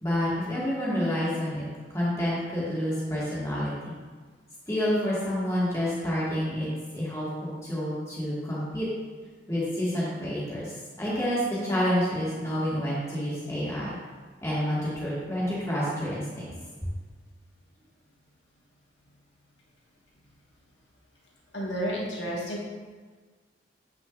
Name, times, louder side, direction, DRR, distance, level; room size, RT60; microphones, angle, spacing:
voice 1, 0.0-3.9 4.7-8.9 9.5-10.7 11.0-14.0 14.4-16.5, equal, 15° left, -8 dB, 2.0 m, -29 dB
voice 2, 21.5-22.6, equal, 75° left, -4 dB, 1.7 m, -31 dB
8.0 x 5.9 x 2.6 m, 1.5 s
head